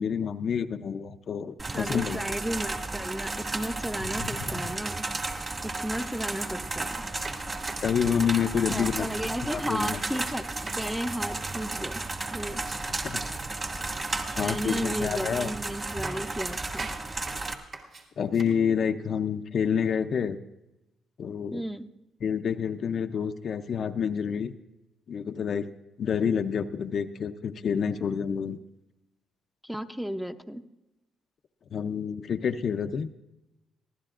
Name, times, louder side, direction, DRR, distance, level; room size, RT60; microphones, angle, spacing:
voice 1, 0.0-2.2 4.2-4.6 7.8-9.1 9.5-10.0 12.9-13.2 14.3-15.5 18.2-20.4 21.2-21.6 22.2-24.6 25.1-25.7 26.0-28.6 31.7-33.1, left 7 dB, 55° left, 8 dB, 0.6 m, -28 dB
sound 1, 1.6-17.5, right 2 dB, 30° right, 1.8 m, -33 dB
voice 2, 1.7-5.0 5.6-7.0 8.7-12.0 12.3-12.6 14.4-16.9 21.5-21.8 29.6-30.6, equal, ahead, 7 dB, 0.7 m, -34 dB
sound 2, 7.2-9.1 9.5-10.9 11.3-11.9 12.3-13.0 14.0-14.6 15.4-15.6 15.9-18.4, right 3 dB, 55° right, 2.4 m, -43 dB
24.0 x 15.5 x 2.5 m, 0.97 s
cardioid pair, 90°, 0 cm